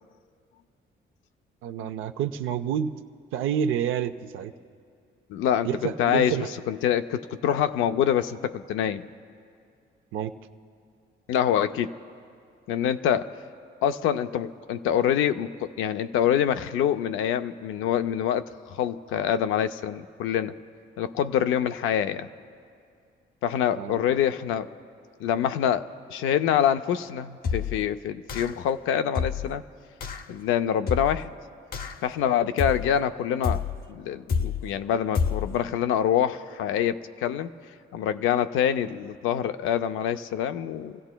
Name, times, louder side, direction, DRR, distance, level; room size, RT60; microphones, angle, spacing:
voice 1, 1.6-2.9 3.3-4.5 5.6-6.5 10.1-10.3 23.7-24.0, right 9 dB, 85° right, 8 dB, 0.6 m, -28 dB
voice 2, 5.3-9.1 11.3-11.9 12.7-13.3 13.8-20.5 21.0-22.3 23.4-24.7 25.2-29.6 30.3-31.3 32.0-33.6 33.9-37.5 37.9-41.0, left 9 dB, 90° left, 10 dB, 0.5 m, -25 dB
sound 1, 27.4-27.9 28.3-28.7 29.1-29.6 30.0-30.3 30.9-31.3 31.7-32.1 32.6-33.0 33.4-33.9 34.3-34.7 35.1-35.6, left 6 dB, 50° left, 0.7 m, -29 dB
29.5 x 16.5 x 2.2 m, 2.4 s
cardioid pair, 90°, 20 cm